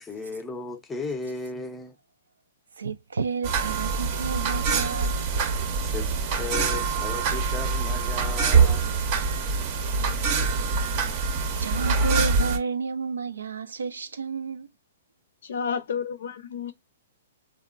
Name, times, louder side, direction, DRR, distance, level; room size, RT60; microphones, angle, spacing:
voice 1, 0.0-2.0 5.8-8.9, left 4 dB, 10° left, 0.5 m, -35 dB
voice 2, 2.8-5.7 10.4-10.5 11.1-14.7, right 5 dB, 85° right, 0.3 m, -32 dB
sound 1, 3.4-12.6, right 5 dB, 45° right, 0.6 m, -24 dB
voice 3, 15.4-16.7, left 6 dB, 70° left, 0.5 m, -31 dB
3.1 x 2.1 x 2.4 m
hypercardioid pair, 125°, 0 cm